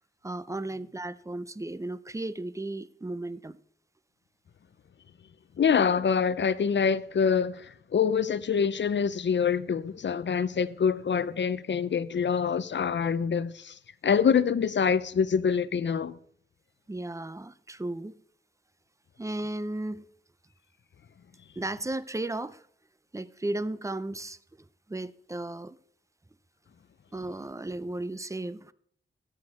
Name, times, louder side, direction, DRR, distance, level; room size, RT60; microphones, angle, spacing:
voice 1, 0.2-3.6 16.9-18.1 19.2-20.0 21.6-22.6 23.1-24.4 24.9-25.8 27.1-28.7, right 2 dB, 15° right, 0.5 m, -35 dB
voice 2, 5.6-13.8 14.0-16.2, left 6 dB, 60° left, 0.6 m, -25 dB
15.0 x 8.0 x 4.8 m
wide cardioid pair, 120°, 21 cm